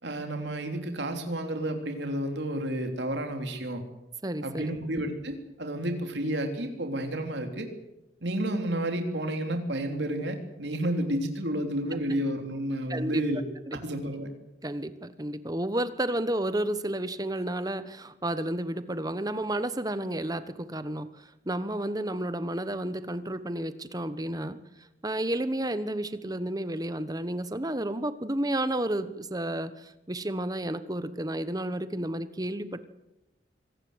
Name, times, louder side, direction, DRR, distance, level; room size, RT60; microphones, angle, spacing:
voice 1, 0.0-3.8 4.4-7.7 8.2-13.4 13.7-14.3, right 1 dB, 70° right, 4 dB, 3.3 m, -31 dB
voice 2, 4.2-4.8 12.9-13.2 13.7-13.8 14.6-24.6 25.0-32.8, right 1 dB, 20° right, 12 dB, 1.2 m, -31 dB
25.5 x 18.5 x 8.1 m, 0.95 s
head